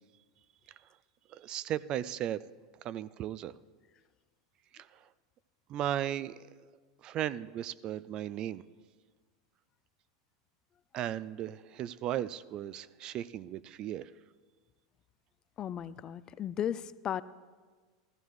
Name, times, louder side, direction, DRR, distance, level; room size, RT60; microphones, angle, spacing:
voice 1, 1.3-2.4 2.8-3.5 4.7-5.0 5.7-6.3 7.0-8.6 10.9-14.1, right 11 dB, 40° right, 17 dB, 0.3 m, -36 dB
voice 2, 15.6-17.2, left 10 dB, 35° left, 17 dB, 0.4 m, -35 dB
14.5 x 14.5 x 3.2 m, 1.4 s
hypercardioid pair, 85°, 2 cm